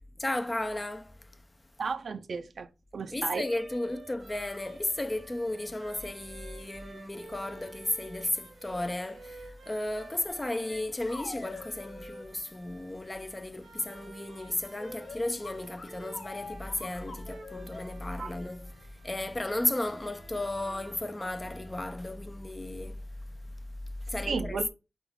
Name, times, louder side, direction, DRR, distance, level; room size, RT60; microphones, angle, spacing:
voice 1, 0.2-1.4 3.1-23.5 24.1-24.7, left 1 dB, 15° left, 0.4 m, -34 dB
voice 2, 1.8-3.5 18.2-18.3 24.3-24.7, right 5 dB, 60° right, 0.4 m, -34 dB
sound 1, 3.3-21.8, right 4 dB, 80° right, 1.2 m, -53 dB
sound 2, 10.3-10.4 10.7-12.3 14.8-17.8, left 3 dB, 40° left, 0.8 m, -44 dB
4.0 x 3.5 x 3.6 m
wide cardioid pair, 165°, 0 cm